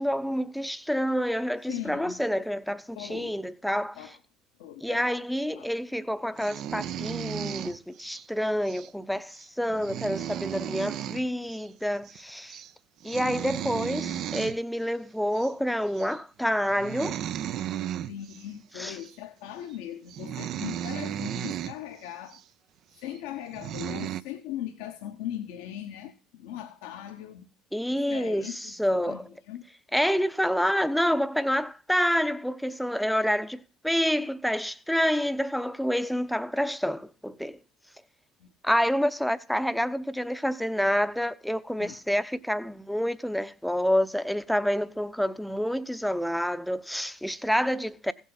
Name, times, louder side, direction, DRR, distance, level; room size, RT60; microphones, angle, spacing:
voice 1, 0.0-4.0 4.8-12.6 13.0-17.2 18.8-19.0 27.7-29.2 29.9-37.6 38.6-48.1, equal, ahead, 0.7 m, -28 dB
voice 2, 1.7-2.2 2.9-3.3 4.0-4.1 4.6-5.2 5.5-5.7 13.2-13.3 18.1-22.4 23.0-27.5 27.9-29.6 38.4-38.5 41.8-42.0, left 11 dB, 75° left, 1.0 m, -39 dB
sound 1, 6.4-8.2 8.7-8.9 9.3-9.4 9.7-11.3 11.5-11.7 11.9-12.2 12.5-12.7 13.0-14.6 15.3-15.5 16.0-16.2 16.7-18.4 19.0-19.1 19.7-19.8 20.1-21.7 22.3-22.4 23.1-23.2 23.5-24.2, right 11 dB, 55° right, 0.6 m, -35 dB
16.0 x 7.3 x 4.0 m
hypercardioid pair, 70°, 0 cm